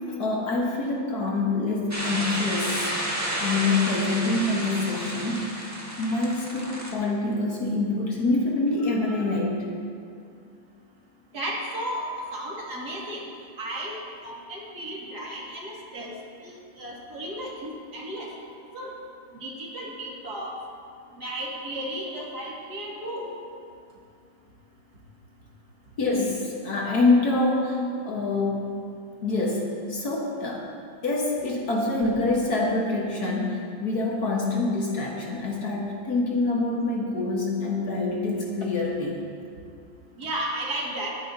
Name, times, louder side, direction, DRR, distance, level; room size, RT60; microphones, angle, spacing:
voice 1, 0.1-2.9 3.4-5.6 6.0-9.7 26.0-28.8 29.2-30.6 31.0-39.2, left 2 dB, 55° left, -2 dB, 1.7 m, -26 dB
sound 1, 1.9-6.9, equal, 10° right, 1.3 m, -31 dB
voice 2, 11.3-13.2 13.6-13.9 14.2-16.1 16.4-18.3 18.7-18.9 19.4-20.5 21.2-23.3 40.2-41.1, right 1 dB, 55° right, -4 dB, 2.6 m, -34 dB
21.0 x 10.0 x 2.8 m, 2.3 s
omnidirectional pair, 2.2 m